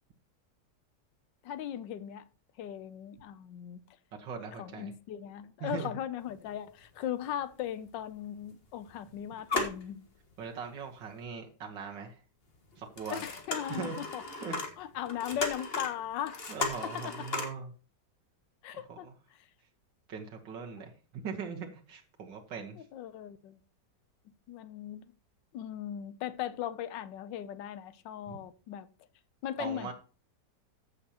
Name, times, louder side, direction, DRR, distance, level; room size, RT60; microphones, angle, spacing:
voice 1, 1.4-2.2 2.6-3.8 4.6-10.0 13.1-14.2 14.8-16.5 16.8-17.3 18.6-19.1 22.9-23.6 24.5-25.0 25.5-28.9 29.4-29.9, left 10 dB, 85° left, 1.4 m, -38 dB
voice 2, 4.2-4.9 5.6-5.9 10.4-12.2 12.8-13.2 13.7-14.0 14.3-14.6 16.5-17.7 18.7-19.1 20.1-22.8 28.3-28.4 29.6-29.9, right 6 dB, 90° right, 2.0 m, -40 dB
sound 1, 6.3-6.4 6.7-6.8 7.8-7.9 8.3-9.0 9.3-10.5 11.0-11.1 12.7-17.5, left 3 dB, 35° left, 1.6 m, -36 dB
14.5 x 6.7 x 2.9 m
omnidirectional pair, 1.9 m